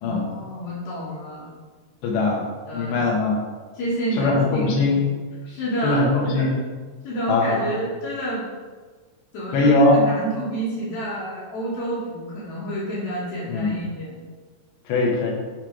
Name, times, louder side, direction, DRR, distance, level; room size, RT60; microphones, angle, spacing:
voice 1, 0.0-1.5 2.7-3.0 3.7-5.1 5.5-6.5 7.0-8.4 9.3-14.2, right 1 dB, 65° left, -11 dB, 3.5 m, -29 dB
voice 2, 2.0-2.5 2.7-3.4 4.2-5.0 5.8-6.6 7.3-7.8 9.5-10.0 13.5-13.7 14.9-15.3, left 2 dB, 90° left, -2 dB, 3.5 m, -20 dB
10.0 x 3.4 x 4.8 m, 1.4 s
omnidirectional pair, 4.8 m